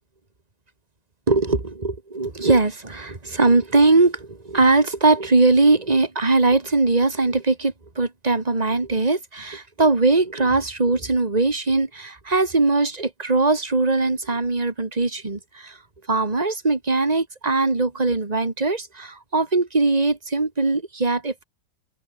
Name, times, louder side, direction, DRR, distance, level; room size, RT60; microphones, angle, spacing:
voice 1, 1.3-15.8 16.1-21.4, right 3 dB, 25° right, 2.5 m, -21 dB
omnidirectional pair, 1.7 m